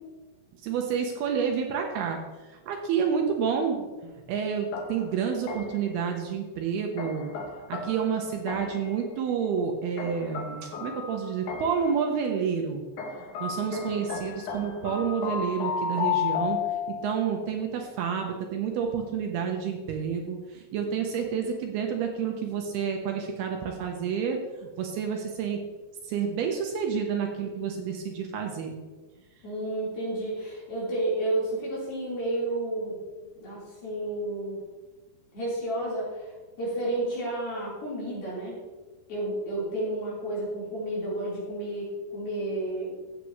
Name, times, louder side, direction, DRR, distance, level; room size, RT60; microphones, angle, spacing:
voice 1, 0.6-7.3 7.7-12.8 13.4-16.6 16.9-25.6 26.0-28.8, right 7 dB, 75° right, 2 dB, 2.6 m, -29 dB
sound 1, 4.7-5.9 7.0-8.9 10.0-11.9 13.0-17.3, left 6 dB, 75° left, 1.8 m, -33 dB
voice 2, 13.6-14.1 29.4-33.0 33.4-34.6 35.3-36.3 36.6-38.6 39.1-42.9, right 1 dB, 60° left, -7 dB, 5.8 m, -31 dB
14.0 x 8.4 x 3.1 m, 1.3 s
omnidirectional pair, 5.0 m